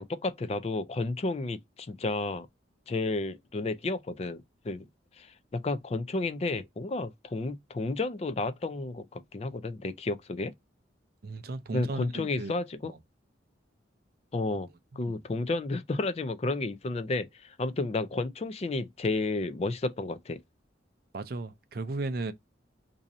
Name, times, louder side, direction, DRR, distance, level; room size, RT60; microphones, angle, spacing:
voice 1, 0.0-2.5 2.9-4.9 5.2-10.5 11.7-12.9 14.3-14.7 15.0-20.4, left 2 dB, 35° left, 0.4 m, -32 dB
voice 2, 11.2-12.5 12.8-13.0 15.0-15.1 21.1-22.3, right 2 dB, 55° right, 0.4 m, -35 dB
2.7 x 2.5 x 4.0 m
head